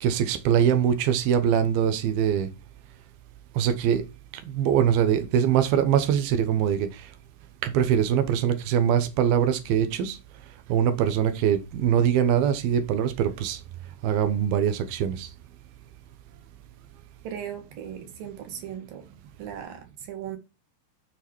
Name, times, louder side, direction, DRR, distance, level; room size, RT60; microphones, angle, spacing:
voice 1, 0.0-2.5 3.6-4.0 4.5-7.1 7.6-10.2 10.7-13.6 14.0-15.3, right 9 dB, 90° right, 2.1 m, -23 dB
voice 2, 17.2-19.0 19.4-20.4, right 9 dB, 55° right, 2.9 m, -37 dB
12.5 x 4.9 x 4.5 m
omnidirectional pair, 5.9 m